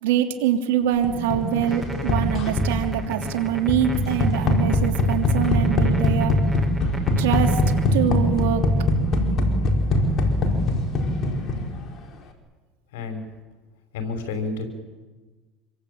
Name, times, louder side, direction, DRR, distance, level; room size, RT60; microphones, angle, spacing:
voice 1, 0.0-6.3 7.2-7.6 7.9-8.7, right 10 dB, 85° right, 4 dB, 3.2 m, -24 dB
sound 1, 1.0-11.9, left 1 dB, 40° left, 4.9 m, -22 dB
sound 2, 1.5-7.9, right 2 dB, 15° right, 3.5 m, -36 dB
voice 2, 12.9-13.2 13.9-14.7, left 3 dB, 85° left, 6 dB, 5.9 m, -29 dB
27.0 x 23.0 x 8.8 m, 1.3 s
supercardioid pair, 115°, 0 cm